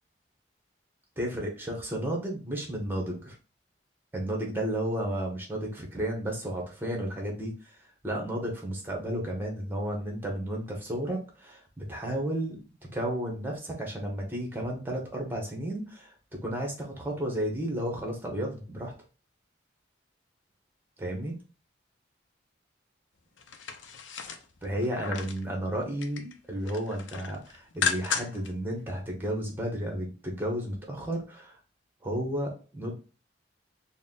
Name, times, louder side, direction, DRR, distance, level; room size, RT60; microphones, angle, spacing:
voice 1, 1.2-3.3 4.1-7.8 8.0-12.6 12.9-16.1 16.4-18.9 21.0-21.3 24.6-31.6 32.0-32.9, right 1 dB, 10° right, 0 dB, 1.0 m, -32 dB
sound 1, 23.4-25.4 25.8-26.3 26.6-28.5 28.9-29.0, left 6 dB, 90° left, 0.6 m, -34 dB
4.1 x 2.2 x 3.7 m, 0.35 s
head